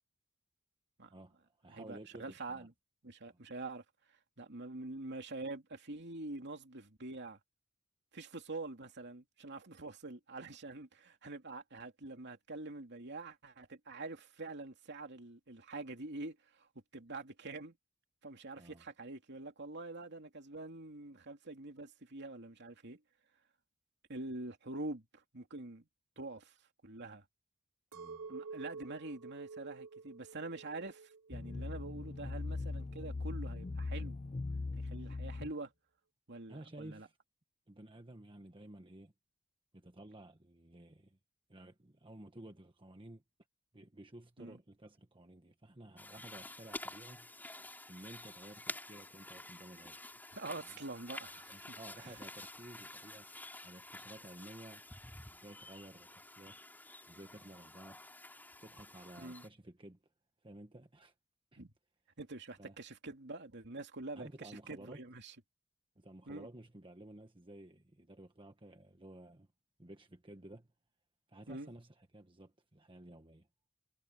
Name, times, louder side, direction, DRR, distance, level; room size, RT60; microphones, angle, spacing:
voice 1, 1.1-2.7 3.3-3.4 18.6-18.8 27.9-28.3 36.5-37.2 37.7-39.1 39.7-41.2 41.5-43.2 43.7-47.3 47.9-50.1 50.7-50.8 51.5-54.8 55.3-56.6 57.1-58.0 58.6-60.0 60.4-61.1 61.5-61.6 62.6-62.8 64.1-65.0 65.9-69.5 69.8-70.7 71.3-73.5, right 1 dB, 25° right, 1.4 m, -54 dB
voice 2, 1.7-2.7 3.0-3.8 4.4-7.4 8.1-16.4 16.9-17.7 18.2-23.0 24.1-25.9 26.2-26.5 26.8-27.2 28.3-34.2 34.8-35.7 36.3-37.1 44.4-44.6 50.3-51.6 52.0-52.2 59.2-59.4 61.6-61.7 62.2-65.3 66.3-66.5 71.5-71.7, right 2 dB, 55° right, 2.8 m, -45 dB
Chink clink, 27.9-32.2 32.6-33.2, right 4 dB, 85° right, 2.9 m, -50 dB
sound 1, 31.3-35.5, left 3 dB, 30° left, 0.4 m, -40 dB
sound 2, 46.0-59.5, left 2 dB, 10° left, 5.4 m, -50 dB
head